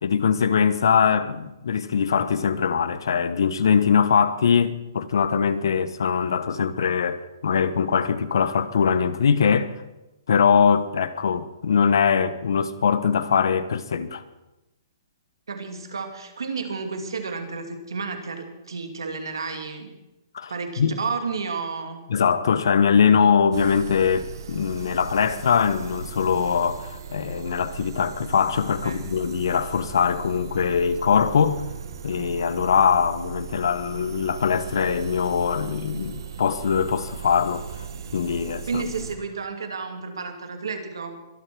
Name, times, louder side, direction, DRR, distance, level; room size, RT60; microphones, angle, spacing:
voice 1, 0.0-9.7 10.3-14.2 20.3-20.5 20.8-20.9 22.1-31.6 32.0-37.7 38.1-38.8, left 6 dB, 75° left, 1.1 m, -22 dB
voice 2, 15.5-20.0 20.5-22.0 28.8-29.0 38.7-41.2, right 4 dB, 85° right, 2.5 m, -31 dB
sound 1, 23.5-39.2, right 7 dB, 70° right, 1.8 m, -38 dB
23.0 x 8.1 x 6.2 m
hypercardioid pair, 140°, 2 cm